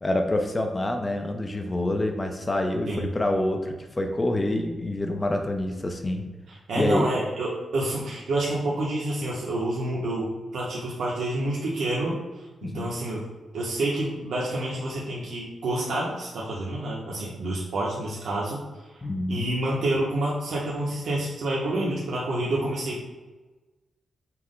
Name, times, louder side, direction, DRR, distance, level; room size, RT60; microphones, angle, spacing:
voice 1, 0.0-6.3 6.8-7.1 12.6-12.9 19.0-19.5, left 1 dB, 20° left, 4 dB, 0.4 m, -27 dB
voice 2, 6.5-12.2 12.6-13.3 13.5-18.6 18.9-23.0, right 1 dB, 90° right, -5 dB, 0.8 m, -28 dB
5.6 x 2.1 x 3.7 m, 1.2 s
wide cardioid pair, 170°, 0 cm